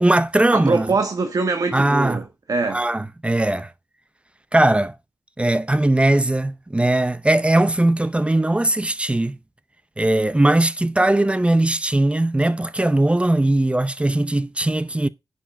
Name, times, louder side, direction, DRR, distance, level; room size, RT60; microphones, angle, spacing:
voice 1, 0.0-0.9 1.7-2.2 2.7-3.7 4.5-5.0 5.4-9.4 10.0-15.1, right 1 dB, 15° right, 0.6 m, -19 dB
voice 2, 0.5-2.8, right 3 dB, 55° right, 1.4 m, -23 dB
10.5 x 6.7 x 4.4 m
wide cardioid pair, 115°, 7 cm